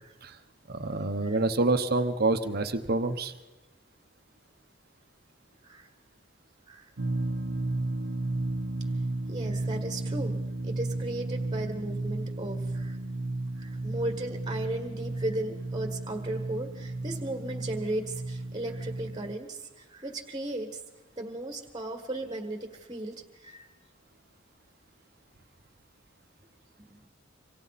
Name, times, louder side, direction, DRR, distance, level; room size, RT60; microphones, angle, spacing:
voice 1, 0.7-3.3, right 2 dB, 55° right, 8 dB, 1.0 m, -27 dB
sound 1, 7.0-19.3, right 2 dB, 75° right, 1.1 m, -33 dB
voice 2, 9.3-10.4 10.6-13.0 13.6-20.8 21.2-23.7 26.8-27.0, right 1 dB, 20° right, 5 dB, 1.7 m, -36 dB
27.0 x 25.0 x 4.2 m, 1.1 s
head